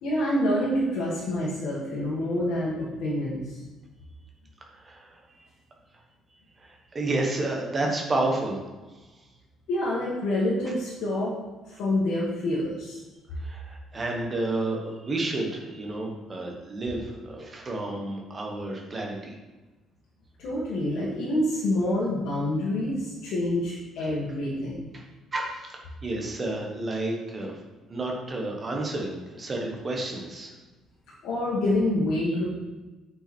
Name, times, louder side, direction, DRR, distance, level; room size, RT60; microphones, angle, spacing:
voice 1, 0.0-3.4 9.7-11.3 11.7-13.0 20.4-24.8 31.2-32.5, left 1 dB, 65° left, -6 dB, 1.8 m, -27 dB
voice 2, 4.7-5.5 6.6-9.0 13.3-19.3 24.0-24.1 24.9-25.0 25.3-27.6 27.9-30.5, right 2 dB, 20° right, 0 dB, 1.2 m, -31 dB
8.6 x 5.2 x 4.5 m, 1.2 s
cardioid pair, 180°, 0 cm